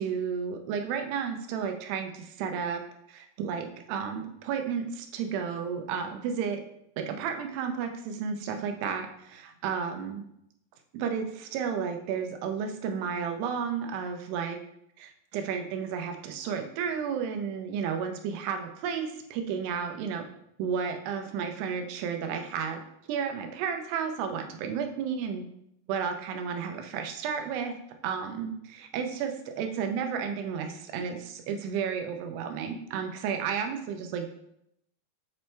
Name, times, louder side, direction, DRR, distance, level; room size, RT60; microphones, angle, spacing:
voice 1, 0.0-2.8 3.1-6.6 7.0-10.2 10.9-14.6 15.0-20.2 20.6-22.8 23.1-25.4 25.9-27.7 28.0-34.3, right 6 dB, 90° right, 5 dB, 2.8 m, -32 dB
7.9 x 3.2 x 4.4 m, 0.76 s
omnidirectional pair, 4.6 m